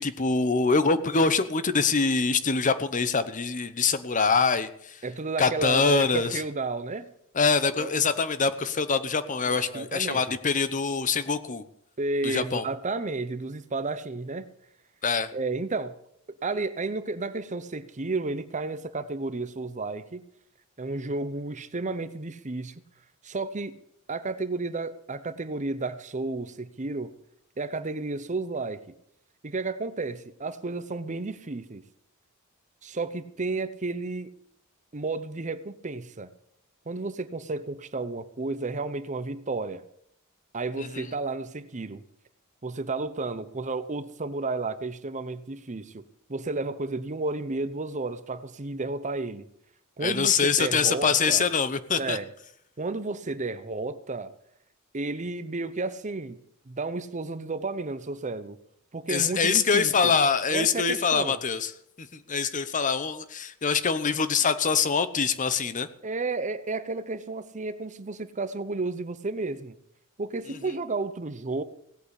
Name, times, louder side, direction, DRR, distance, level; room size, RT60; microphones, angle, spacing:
voice 1, 0.0-5.0 5.4-6.4 7.3-11.6 12.2-12.6 15.0-15.3 40.8-41.1 50.0-52.2 59.1-61.7 62.0-65.9, left 5 dB, 35° left, 13 dB, 0.9 m, -24 dB
voice 2, 5.0-7.1 7.8-8.0 9.4-10.4 12.0-14.5 15.3-15.9 16.3-20.2 20.8-22.8 23.2-23.8 24.1-27.1 27.6-28.8 29.4-31.8 32.8-34.3 34.9-36.3 36.9-39.8 40.5-42.0 42.6-46.0 46.3-49.5 50.0-51.5 52.0-52.3 52.8-54.3 54.9-56.4 56.7-58.6 58.9-60.2 60.5-61.4 66.0-69.8 70.2-71.6, right 3 dB, 35° right, 13 dB, 0.8 m, -32 dB
17.5 x 8.5 x 8.2 m, 0.72 s
head